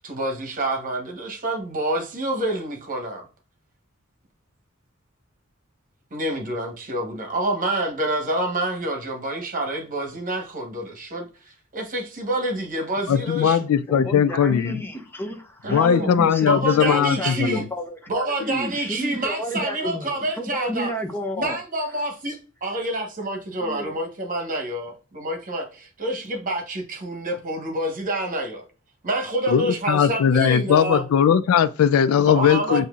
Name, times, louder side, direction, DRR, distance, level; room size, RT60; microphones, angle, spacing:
voice 1, 0.0-3.2 6.1-13.6 15.6-16.2 16.4-17.6 18.1-20.9 21.3-28.6 29.0-31.0 32.3-32.9, right 1 dB, 40° right, 1.2 m, -27 dB
voice 2, 13.1-14.7 15.7-17.7 29.5-32.9, left 8 dB, 85° left, 0.3 m, -19 dB
voice 3, 13.9-21.6 23.6-24.0, equal, 10° left, 0.6 m, -31 dB
7.1 x 2.7 x 2.4 m
head